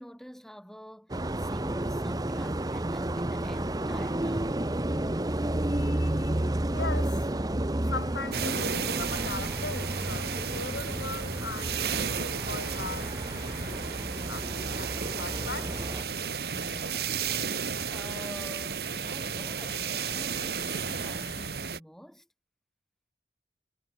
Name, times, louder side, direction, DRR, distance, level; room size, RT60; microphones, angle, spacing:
voice 1, 0.0-4.7 16.5-22.3, equal, ahead, 5.5 m, -47 dB
sound 1, 1.1-16.0, right 1 dB, 20° right, 0.8 m, -31 dB
voice 2, 5.7-7.2 7.9-16.1, left 3 dB, 75° left, 2.2 m, -40 dB
sound 2, 7.9-21.6, left 2 dB, 45° left, 2.4 m, -49 dB
sound 3, 8.3-21.8, right 6 dB, 55° right, 1.3 m, -33 dB
head